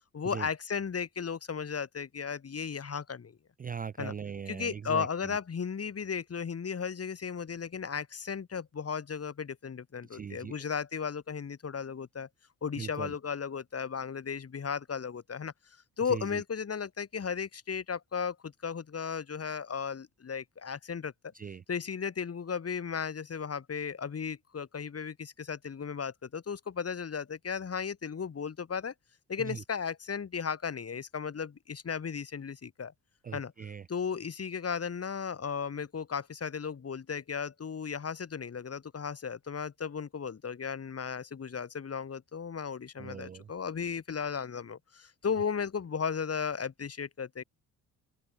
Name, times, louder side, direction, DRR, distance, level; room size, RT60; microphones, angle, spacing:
voice 1, 0.1-3.4 4.0-4.1 4.5-12.3 12.6-15.5 16.0-21.1 21.7-28.9 29.3-32.9 33.3-33.5 33.9-47.4, left 6 dB, 35° left, 2.2 m, -35 dB
voice 2, 3.6-5.1 10.1-10.5 12.8-13.1 16.0-16.4 21.3-21.6 29.4-29.6 33.2-33.9 43.0-43.5, right 7 dB, 20° right, 0.5 m, -40 dB
open air
hypercardioid pair, 50°, 41 cm